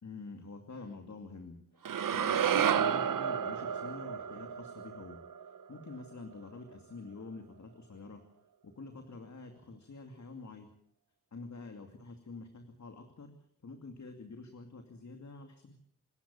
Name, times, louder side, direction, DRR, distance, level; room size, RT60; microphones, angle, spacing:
voice 1, 0.0-5.2 5.7-8.2 8.7-10.7 11.3-13.3 13.6-15.8, left 3 dB, 60° left, 5 dB, 2.6 m, -47 dB
sound 1, 1.8-6.1, right 8 dB, 90° right, 0.8 m, -31 dB
26.5 x 14.5 x 7.1 m, 0.67 s
cardioid pair, 70°, 32 cm